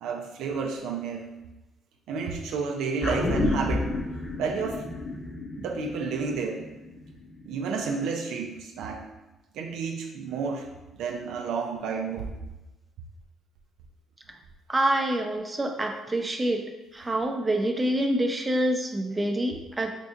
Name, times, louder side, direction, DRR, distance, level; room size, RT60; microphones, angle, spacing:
voice 1, 0.0-1.3 2.1-3.9 4.4-4.8 5.6-6.6 7.4-9.0 9.5-10.7 11.0-12.3, right 5 dB, 75° right, 1 dB, 0.4 m, -31 dB
sound 1, 3.0-7.6 7.9-8.0, left 2 dB, 30° left, 0.8 m, -31 dB
voice 2, 14.7-16.6 16.9-20.0, right 1 dB, 20° right, 4 dB, 0.5 m, -26 dB
5.3 x 2.6 x 2.4 m, 1.1 s
hypercardioid pair, 55°, 0 cm